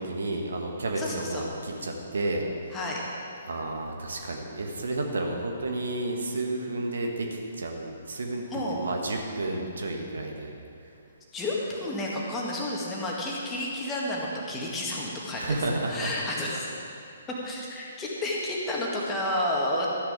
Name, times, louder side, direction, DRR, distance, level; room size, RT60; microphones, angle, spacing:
voice 1, 0.0-2.5 3.5-8.4 8.7-10.5 15.3-16.1, right 2 dB, 60° right, 2 dB, 1.5 m, -31 dB
voice 2, 1.0-1.4 2.7-3.0 8.5-8.8 11.3-15.6 15.9-16.7 17.4-19.9, left 1 dB, 15° left, -3 dB, 2.0 m, -31 dB
13.0 x 9.9 x 5.1 m, 2.5 s
figure-of-eight pair, 125°, 0 cm